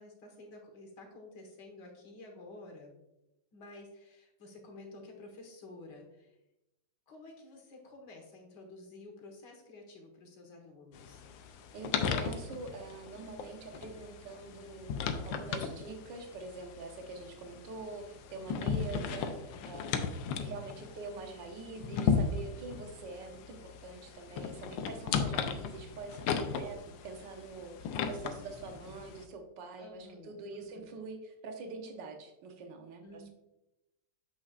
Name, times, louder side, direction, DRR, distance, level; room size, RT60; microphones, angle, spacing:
voice 1, 0.0-2.9 3.5-6.4 7.1-11.2 20.7-21.0 29.8-30.9 33.0-33.3, left 2 dB, 70° left, 2 dB, 1.9 m, -51 dB
sound 1, 11.0-29.3, left 6 dB, 85° left, 1.3 m, -36 dB
voice 2, 11.4-14.9 15.2-20.1 20.4-33.3, right 3 dB, 75° right, 4 dB, 1.6 m, -45 dB
7.3 x 6.2 x 2.4 m, 0.91 s
omnidirectional pair, 2.0 m